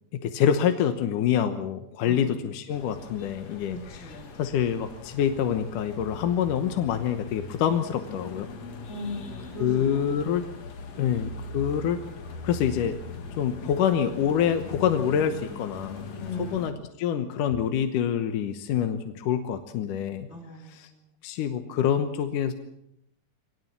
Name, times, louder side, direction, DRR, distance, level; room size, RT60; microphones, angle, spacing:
voice 1, 0.1-3.8 4.4-8.5 9.6-10.4 11.0-12.0 12.4-13.0 13.4-16.1 16.4-20.3 20.7-20.9 21.2-22.5, left 9 dB, 70° left, 7 dB, 2.5 m, -26 dB
voice 2, 2.0-2.4 3.7-4.4 8.9-10.5 10.9-11.5 16.2-16.9 20.3-21.1 21.7-22.0, left 1 dB, 20° left, 0 dB, 2.7 m, -40 dB
sound 1, 2.7-16.7, left 4 dB, 50° left, 2.9 m, -41 dB
24.0 x 19.0 x 7.4 m, 0.78 s
omnidirectional pair, 4.2 m